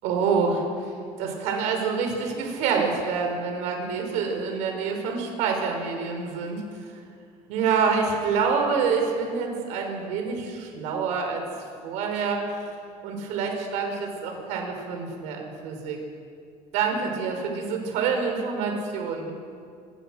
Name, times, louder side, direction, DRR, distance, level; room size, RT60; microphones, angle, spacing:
voice 1, 0.0-6.6 7.5-11.4 11.8-12.4 13.0-16.0 16.7-19.3, right 5 dB, 65° right, 3 dB, 5.6 m, -27 dB
28.0 x 20.0 x 6.6 m, 2.3 s
cardioid pair, 180°, 13 cm